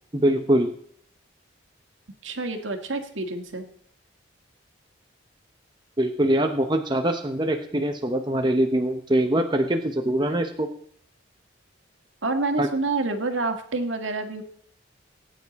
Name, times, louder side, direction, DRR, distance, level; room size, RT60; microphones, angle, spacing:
voice 1, 0.1-0.7 6.0-10.7 12.6-12.7, right 1 dB, 20° right, 4 dB, 0.8 m, -23 dB
voice 2, 2.2-3.7 12.2-14.4, right 3 dB, 75° right, 5 dB, 1.7 m, -28 dB
19.0 x 9.3 x 4.2 m, 0.63 s
head